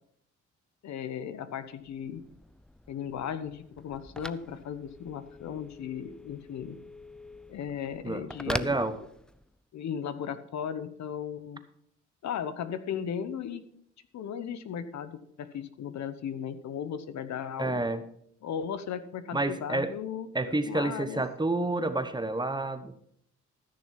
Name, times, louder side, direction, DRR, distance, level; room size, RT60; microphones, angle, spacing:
voice 1, 0.8-2.2 2.9-6.8 7.5-9.0 9.7-11.6 12.2-13.6 14.1-17.8 18.4-21.2, left 8 dB, 65° left, 12 dB, 1.0 m, -36 dB
Telephone, 1.8-9.6, left 1 dB, 5° left, 0.4 m, -43 dB
voice 2, 8.0-9.0 17.6-18.0 19.3-19.9 20.3-22.9, right 2 dB, 15° right, 10 dB, 1.0 m, -29 dB
14.0 x 6.4 x 5.9 m, 0.68 s
cardioid pair, 90°, 30 cm